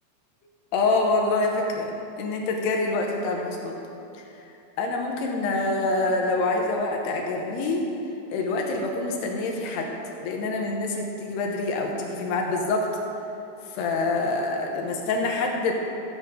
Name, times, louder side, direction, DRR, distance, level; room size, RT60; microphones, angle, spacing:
voice 1, 0.7-1.9 2.2-3.8 4.4-4.5 4.8-7.8 8.3-9.9 10.2-12.9 13.7-15.7, left 3 dB, 75° left, 1 dB, 2.7 m, -26 dB
15.0 x 8.1 x 5.1 m, 2.8 s
omnidirectional pair, 5.6 m